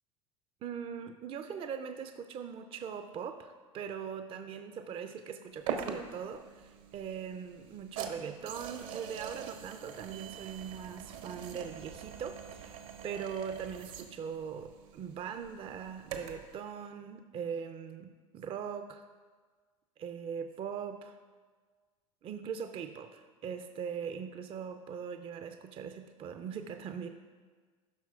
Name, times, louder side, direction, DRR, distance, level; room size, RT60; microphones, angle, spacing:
voice 1, 0.6-19.0 20.0-21.2 22.2-27.1, right 7 dB, 30° right, 8 dB, 0.4 m, -41 dB
sound 1, 5.7-16.5, right 7 dB, 60° right, 0.8 m, -43 dB
12.5 x 5.7 x 2.4 m, 1.5 s
hypercardioid pair, 80°, 17 cm